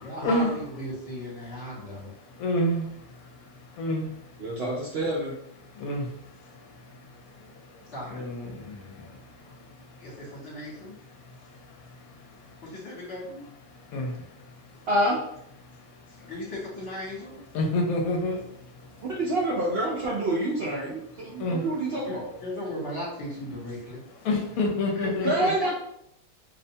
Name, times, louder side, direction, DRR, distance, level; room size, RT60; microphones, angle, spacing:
voice 1, 0.0-2.1 7.8-8.3 10.0-10.9 12.6-13.4 16.2-17.4 17.8-18.4 21.4-21.7 22.1-24.0 24.5-24.6 24.9-25.7, left 1 dB, 55° left, -5 dB, 1.2 m, -37 dB
voice 2, 2.4-2.9 3.8-4.1 5.8-6.1 8.1-9.1 13.9-14.2 17.5-18.4 21.4-21.6 24.2-25.5, left 1 dB, 80° left, 1 dB, 1.0 m, -27 dB
voice 3, 4.4-5.3 14.9-15.2 19.1-22.3 25.2-25.7, right 1 dB, 65° right, -4 dB, 0.6 m, -27 dB
2.7 x 2.1 x 2.6 m, 0.74 s
omnidirectional pair, 1.5 m